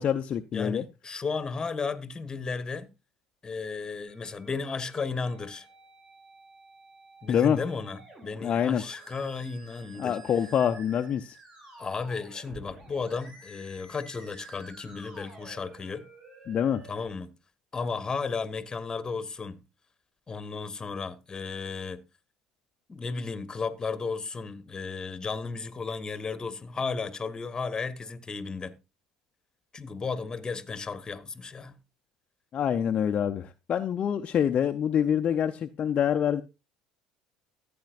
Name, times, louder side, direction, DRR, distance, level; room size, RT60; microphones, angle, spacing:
voice 1, 0.0-0.8 7.3-7.6 8.4-8.8 10.0-11.4 16.5-16.8 32.5-36.4, left 8 dB, 45° left, 0.6 m, -26 dB
voice 2, 0.5-2.9 3.4-5.7 7.2-10.2 11.8-16.0 16.9-17.3 17.7-19.6 20.3-22.0 22.9-28.8 29.7-31.8, left 4 dB, 25° left, 1.3 m, -34 dB
Musical instrument, 4.1-17.1, right 2 dB, 40° right, 7.2 m, -51 dB
14.5 x 8.7 x 2.5 m
hypercardioid pair, 70°, 3 cm